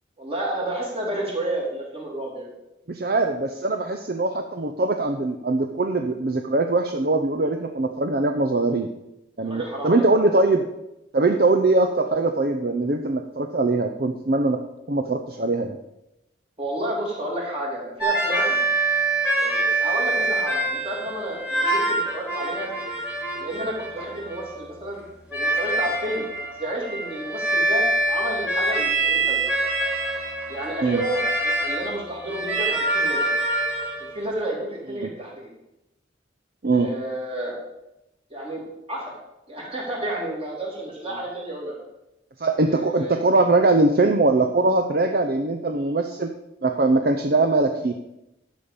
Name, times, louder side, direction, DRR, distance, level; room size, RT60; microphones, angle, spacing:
voice 1, 0.2-2.5 9.4-10.3 16.6-18.6 19.4-22.7 23.4-25.0 25.3-26.3 26.6-29.4 30.5-33.3 34.0-35.5 36.7-37.6 38.3-39.1 39.5-41.8 42.6-43.2, right 1 dB, 30° right, -2 dB, 3.0 m, -31 dB
voice 2, 2.9-8.9 9.4-10.6 11.1-14.6 14.9-15.8 30.8-31.0 35.0-35.1 36.6-36.9 42.4-46.3 46.6-47.9, right 2 dB, 50° right, 6 dB, 0.6 m, -21 dB
sound 1, 18.0-24.6 25.3-34.1, right 2 dB, 5° right, 2.3 m, -25 dB
11.5 x 5.2 x 7.0 m, 0.90 s
head